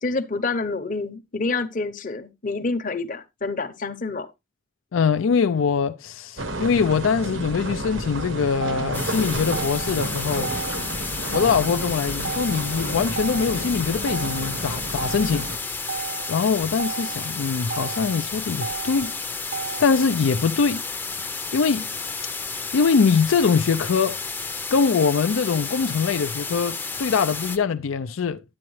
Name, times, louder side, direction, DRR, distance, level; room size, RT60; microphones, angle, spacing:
voice 1, 0.0-4.3, left 3 dB, 40° left, 0.8 m, -28 dB
voice 2, 4.9-10.5 11.3-15.5 15.8-16.0 16.3-19.1 19.8-20.8 21.5-21.9 22.7-24.2 24.7-28.4, left 5 dB, 80° left, 0.4 m, -23 dB
sound 1, 6.4-15.6, right 1 dB, 75° right, 1.2 m, -31 dB
Motor vehicle (road), 8.2-20.2, right 5 dB, 55° right, 0.8 m, -35 dB
sound 2, 8.9-27.6, left 4 dB, 10° left, 0.6 m, -32 dB
10.5 x 8.5 x 3.1 m
head